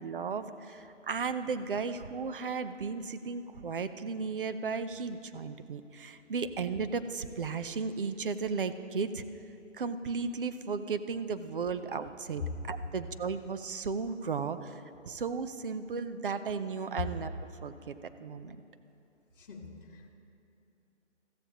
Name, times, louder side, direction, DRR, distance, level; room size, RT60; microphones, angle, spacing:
voice 1, 0.0-9.2 9.7-17.3 17.6-18.6, right 5 dB, 45° right, 11 dB, 0.6 m, -35 dB
voice 2, 19.4-20.1, left 3 dB, 45° left, -1 dB, 1.3 m, -48 dB
15.5 x 14.0 x 2.9 m, 2.8 s
figure-of-eight pair, 150°, 37 cm